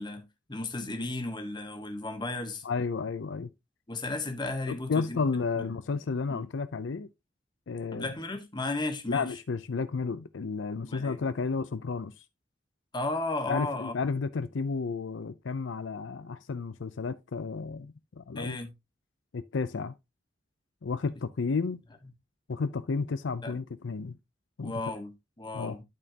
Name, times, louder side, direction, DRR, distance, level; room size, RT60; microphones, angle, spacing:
voice 1, 0.0-2.6 3.9-5.2 6.3-6.5 7.9-9.3 10.8-11.2 12.9-13.9 18.3-18.7 23.4-23.6 24.6-25.8, left 2 dB, 25° left, 1.4 m, -34 dB
voice 2, 2.6-3.5 4.7-7.1 7.7-8.1 9.1-12.1 13.5-18.6 19.3-19.9 20.8-21.8 22.5-24.2 24.6-24.7 25.5-25.8, left 4 dB, 85° left, 0.5 m, -32 dB
12.0 x 4.3 x 2.8 m
head